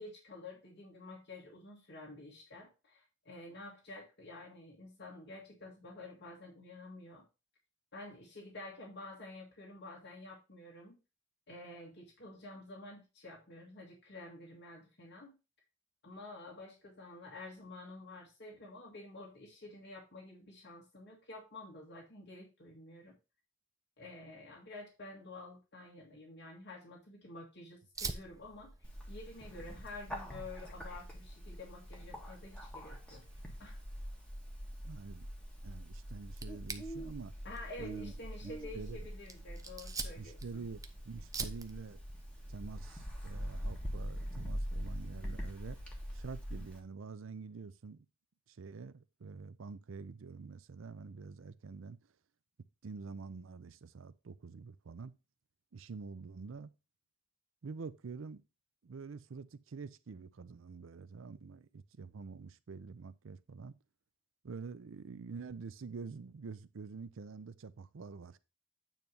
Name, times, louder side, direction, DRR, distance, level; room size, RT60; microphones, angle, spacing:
voice 1, 0.0-7.2 7.9-11.0 11.5-15.4 16.0-23.2 24.0-28.7 29.1-33.2 33.6-33.8 37.4-40.6, left 2 dB, 55° left, 1.9 m, -50 dB
Fire, 28.0-46.2, right 3 dB, 15° right, 0.6 m, -49 dB
Bird, 28.8-46.8, equal, 5° left, 1.6 m, -44 dB
voice 2, 34.8-35.3 35.6-37.3 37.8-38.1 38.4-39.0 40.2-42.0 42.5-45.8 46.1-48.1 48.5-52.0 52.8-55.1 55.7-56.7 57.6-58.4 58.8-63.8 64.4-68.4, right 4 dB, 70° right, 0.5 m, -47 dB
9.0 x 3.1 x 5.3 m
head